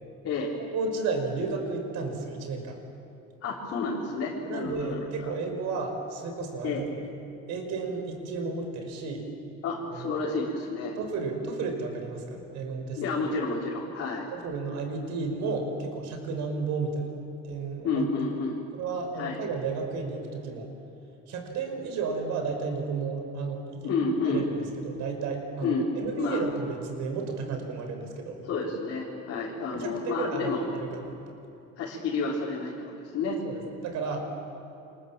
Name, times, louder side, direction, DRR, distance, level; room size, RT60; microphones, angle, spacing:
voice 1, 0.6-2.8 4.5-7.1 7.5-9.3 9.9-10.2 11.0-13.0 14.3-17.1 17.4-18.1 18.7-20.8 21.3-23.9 24.2-28.4 29.7-31.2 33.4-34.3, right 4 dB, 70° right, 5 dB, 5.5 m, -33 dB
voice 2, 3.4-5.3 6.6-6.8 9.6-10.9 13.0-14.3 17.8-18.6 19.2-19.4 23.8-24.4 25.6-25.9 26.2-26.4 28.5-30.6 31.8-33.4, left 4 dB, 50° left, -5 dB, 4.0 m, -30 dB
29.0 x 26.5 x 7.5 m, 2.9 s
cardioid pair, 175°, 30 cm